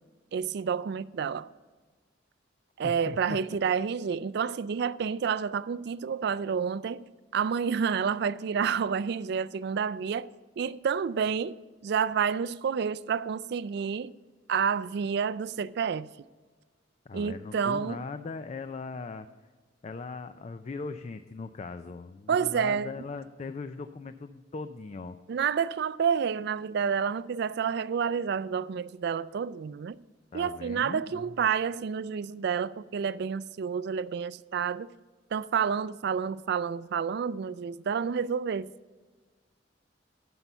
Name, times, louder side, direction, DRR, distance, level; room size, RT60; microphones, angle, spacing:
voice 1, 0.3-1.5 2.8-7.0 7.3-10.3 10.6-11.6 11.8-14.1 14.5-16.1 17.1-18.0 22.3-22.9 25.3-30.0 30.3-34.9 35.3-38.7, right 6 dB, 60° right, 0.3 m, -29 dB
voice 2, 2.8-3.2 17.1-19.3 19.8-25.2 30.3-31.3, left 4 dB, 35° left, 0.4 m, -39 dB
12.0 x 5.5 x 5.6 m
head